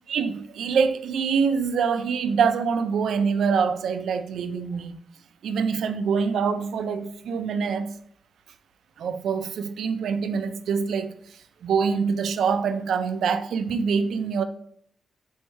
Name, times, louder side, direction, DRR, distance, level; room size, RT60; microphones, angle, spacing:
voice 1, 0.1-4.9 5.4-7.9 9.0-14.4, right 6 dB, 85° right, 0.4 m, -25 dB
4.6 x 2.6 x 4.4 m
wide cardioid pair, 160°, 0 cm